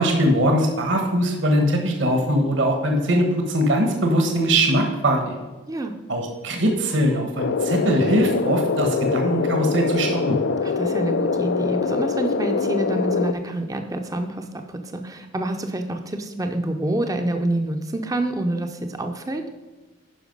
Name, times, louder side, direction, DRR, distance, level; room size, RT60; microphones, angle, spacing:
voice 1, 0.0-5.4 6.1-10.4, right 1 dB, 65° right, 3 dB, 1.3 m, -21 dB
sound 1, 7.4-13.3, left 4 dB, 60° left, 0.4 m, -24 dB
voice 2, 10.6-19.4, right 1 dB, 15° right, 5 dB, 0.5 m, -27 dB
10.0 x 5.7 x 5.3 m, 1.2 s
head